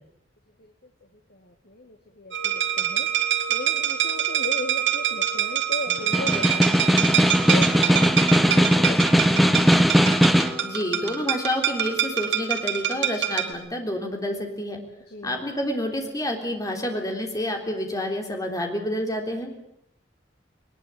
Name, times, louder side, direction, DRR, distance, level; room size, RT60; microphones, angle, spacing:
voice 1, 1.3-7.1 7.5-9.3 15.1-15.5, left 2 dB, 60° left, 5 dB, 2.0 m, -37 dB
sound 1, 2.3-13.5, right 9 dB, 75° right, 2.6 m, -26 dB
Snare drum, 6.0-10.6, equal, ahead, 0.9 m, -19 dB
voice 2, 10.6-14.8 15.2-19.5, left 1 dB, 20° left, 3 dB, 3.6 m, -28 dB
21.0 x 20.5 x 8.6 m, 0.79 s
head